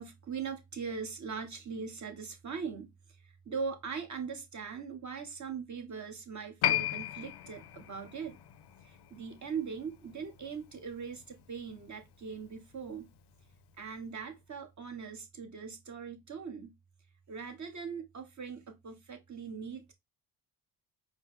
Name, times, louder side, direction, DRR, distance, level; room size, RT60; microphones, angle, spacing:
voice 1, 0.0-2.9 3.5-8.3 8.8-13.1 13.8-16.7 17.3-19.9, right 6 dB, 35° right, 1.2 m, -40 dB
Piano, 6.6-13.6 13.8-13.9, left 12 dB, 55° left, 0.6 m, -37 dB
4.7 x 2.1 x 3.6 m
supercardioid pair, 60°, 49 cm